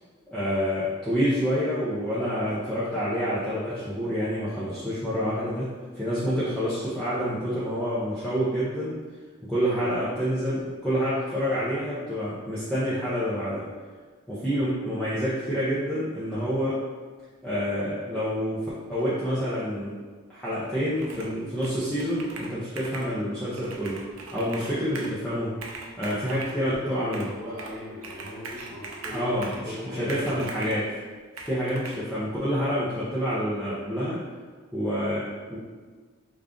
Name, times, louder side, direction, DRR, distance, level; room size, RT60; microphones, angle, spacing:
voice 1, 0.3-9.0 9.4-13.6 14.3-16.8 17.4-20.0 20.3-24.0 24.3-25.5 26.0-27.3 29.1-30.9 31.4-34.2 34.7-35.6, equal, 5° left, -11 dB, 0.5 m, -28 dB
Computer keyboard, 21.0-21.4 21.6-23.1 23.5-25.2 25.5-26.6 27.1-27.8 28.0-29.7 30.1-30.8 31.4-32.0, right 3 dB, 75° right, 0.5 m, -40 dB
voice 2, 26.6-30.6, left 1 dB, 15° right, -9 dB, 1.2 m, -39 dB
3.4 x 2.4 x 3.6 m, 1.5 s
head